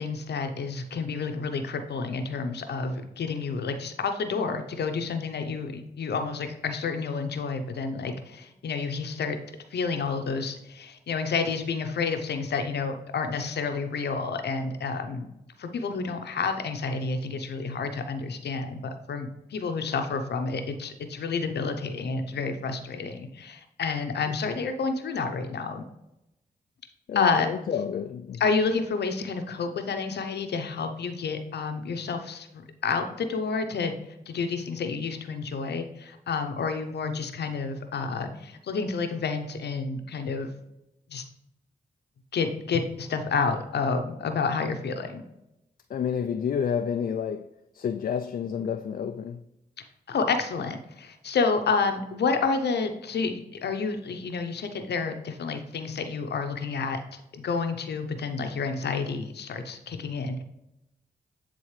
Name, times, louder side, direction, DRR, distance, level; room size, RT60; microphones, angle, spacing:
voice 1, 0.0-9.4 9.7-15.3 15.6-25.8 27.1-27.5 28.4-33.9 34.3-40.5 41.1-41.2 42.3-45.2 50.1-57.0 57.3-60.4, left 4 dB, 80° left, 0.8 m, -29 dB
voice 2, 27.1-28.4 45.9-47.5 47.7-49.4, left 7 dB, 55° left, 0.4 m, -29 dB
8.8 x 3.8 x 3.2 m
cardioid pair, 50°, 17 cm